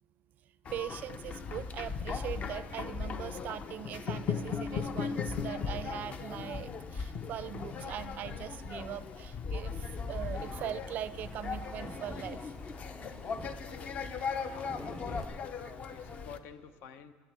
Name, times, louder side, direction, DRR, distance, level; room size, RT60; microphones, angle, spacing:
sound 1, 0.6-16.4, left 5 dB, 35° left, 0.7 m, -38 dB
voice 1, 0.7-12.5 15.6-15.7, right 10 dB, 50° right, 16 dB, 0.4 m, -41 dB
sound 2, 9.8-15.3, right 1 dB, ahead, 0.6 m, -49 dB
voice 2, 13.6-14.0 14.4-15.3 15.9-17.1, left 7 dB, 70° left, 10 dB, 0.8 m, -49 dB
10.0 x 9.4 x 7.5 m, 1.5 s
cardioid pair, 135°, 4 cm